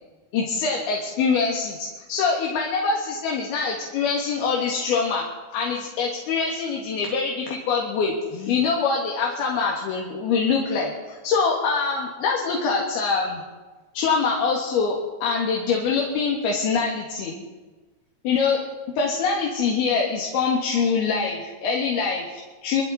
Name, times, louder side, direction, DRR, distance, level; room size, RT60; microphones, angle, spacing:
voice 1, 0.3-5.3 5.5-13.4 13.9-17.5 18.2-18.6 19.0-22.8, left 5 dB, 80° left, -1 dB, 3.7 m, -24 dB
25.0 x 12.5 x 4.2 m, 1.3 s
omnidirectional pair, 4.4 m